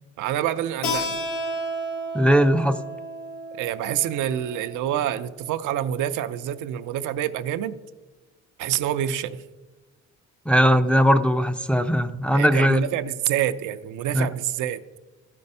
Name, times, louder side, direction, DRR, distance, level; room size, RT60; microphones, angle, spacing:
voice 1, 0.2-1.2 3.6-7.8 8.6-9.4 12.3-14.8, right 11 dB, 85° right, 10 dB, 0.6 m, -27 dB
Keyboard (musical), 0.8-6.1, equal, 80° left, 2.0 m, -33 dB
voice 2, 2.1-2.8 10.5-12.8 14.1-14.3, equal, 5° left, 7 dB, 0.4 m, -19 dB
13.0 x 5.3 x 5.4 m, 1.2 s
cardioid pair, 90°, 30 cm